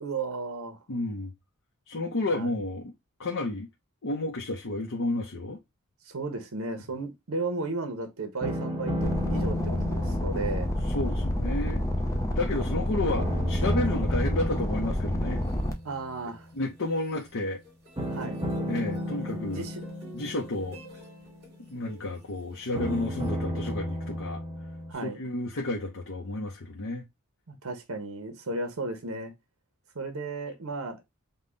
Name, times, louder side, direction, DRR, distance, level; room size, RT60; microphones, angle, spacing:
voice 1, 0.0-0.8 2.3-2.5 6.1-10.7 15.8-16.5 18.1-18.4 19.4-19.8 24.9-25.2 27.5-29.3 29.9-31.0, right 3 dB, 75° right, 0.9 m, -34 dB
voice 2, 0.9-1.3 1.9-2.9 3.2-3.7 4.0-5.6 10.9-11.9 12.3-15.4 16.5-17.6 18.7-19.7 20.1-20.8 21.7-24.4 25.0-27.0, left 2 dB, 65° left, 0.7 m, -31 dB
sound 1, 8.4-12.8 13.2-16.5 18.0-22.0 22.7-24.9, equal, 20° right, 1.0 m, -34 dB
sound 2, 9.0-15.7, left 1 dB, 15° left, 0.6 m, -29 dB
sound 3, 15.4-17.3 17.6-23.3, equal, 50° right, 3.0 m, -50 dB
5.4 x 2.2 x 3.8 m
head